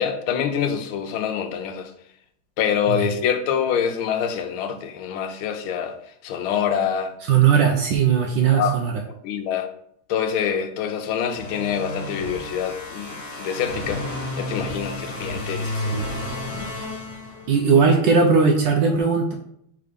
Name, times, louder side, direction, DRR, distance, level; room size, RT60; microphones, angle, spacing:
voice 1, 0.0-1.9 2.6-6.0 6.2-7.1 8.5-8.7 9.2-9.7 10.1-14.0 14.4-16.0, left 8 dB, 85° left, 1.5 m, -25 dB
voice 2, 7.3-8.9 15.8-16.1 17.5-19.3, right 6 dB, 70° right, 1.2 m, -18 dB
sound 1, 11.1-17.8, left 1 dB, 50° left, 1.7 m, -32 dB
4.8 x 4.0 x 5.0 m
omnidirectional pair, 2.3 m